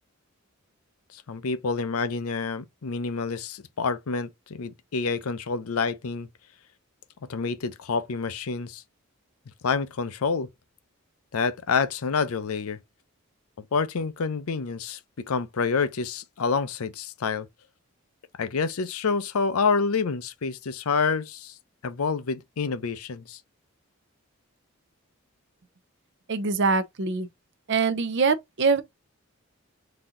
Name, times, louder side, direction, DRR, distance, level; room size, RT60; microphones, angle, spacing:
voice 1, 1.1-6.3 7.3-8.8 9.6-10.5 11.3-12.8 13.6-17.5 18.4-21.5 21.8-23.4, left 5 dB, 80° left, 0.5 m, -28 dB
voice 2, 26.3-27.3 27.7-28.8, right 4 dB, 55° right, 0.6 m, -23 dB
4.0 x 2.8 x 3.7 m
head